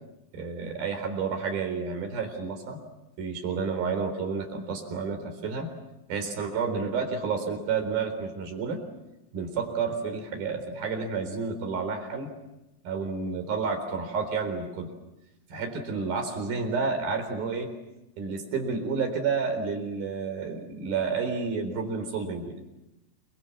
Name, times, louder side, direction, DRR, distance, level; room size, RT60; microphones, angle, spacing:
voice 1, 0.3-2.8 3.2-5.7 6.1-8.8 9.3-12.3 12.8-14.9 15.5-17.7 18.2-22.6, right 5 dB, 60° right, 5 dB, 5.8 m, -30 dB
28.5 x 23.5 x 7.3 m, 0.96 s
omnidirectional pair, 5.0 m